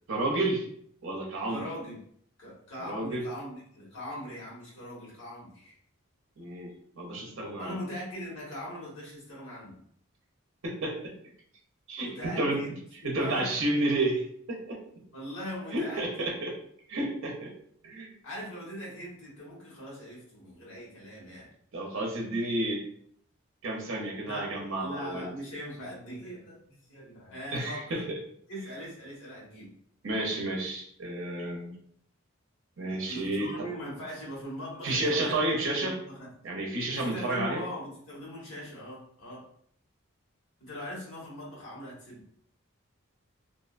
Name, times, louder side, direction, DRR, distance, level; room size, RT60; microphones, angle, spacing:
voice 1, 0.1-0.7 1.0-1.6 2.8-3.2 6.4-7.8 10.6-11.1 11.9-12.6 13.0-14.8 15.7-16.6 16.9-17.5 17.8-18.1 21.7-22.9 23.6-25.3 27.5-28.2 30.0-31.7 32.8-33.7 34.8-36.0 36.4-37.6, right 2 dB, 60° right, -1 dB, 0.6 m, -31 dB
voice 2, 1.5-2.0 2.4-5.8 7.1-9.8 12.0-12.7 13.0-13.5 15.1-16.3 18.2-21.5 24.2-24.5 24.8-28.0 28.5-29.7 33.1-35.4 35.8-36.3 36.9-39.4 40.6-42.2, equal, 75° left, -5 dB, 1.3 m, -40 dB
2.6 x 2.1 x 2.4 m, 0.64 s
head